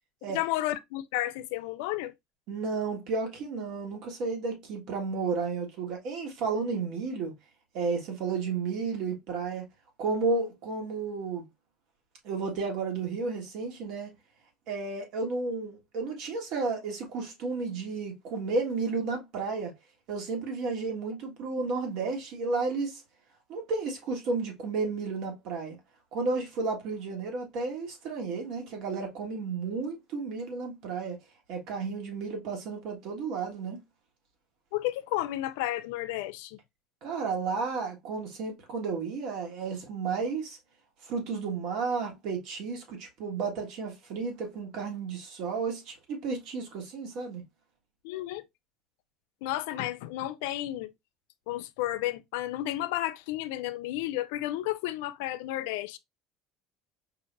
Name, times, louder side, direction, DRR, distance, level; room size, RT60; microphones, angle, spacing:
voice 1, 0.3-2.1 34.7-36.6 48.0-48.4 49.4-50.9 51.5-56.0, left 15 dB, 90° left, 0.4 m, -32 dB
voice 2, 2.5-7.3 7.7-9.7 10.0-11.4 12.2-14.1 14.7-19.7 20.1-23.0 23.5-25.8 26.1-31.2 31.5-33.8 37.0-40.6 41.0-47.4, right 4 dB, 60° right, 1.6 m, -32 dB
5.0 x 2.6 x 2.5 m
cardioid pair, 140°, 0 cm